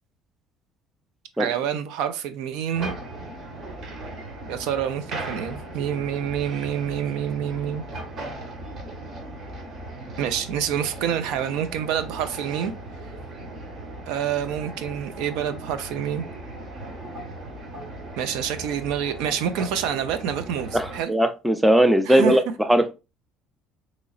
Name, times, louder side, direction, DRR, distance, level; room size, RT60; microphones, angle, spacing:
voice 1, 1.4-2.9 4.5-7.8 10.2-12.7 14.1-16.3 18.2-21.1 22.1-22.4, right 9 dB, 80° right, 0.5 m, -27 dB
sound 1, 2.7-21.0, right 1 dB, 40° right, 0.9 m, -37 dB
voice 2, 20.7-22.4 22.7-22.9, right 1 dB, 5° right, 0.3 m, -18 dB
3.8 x 3.0 x 2.4 m
cardioid pair, 160°, 0 cm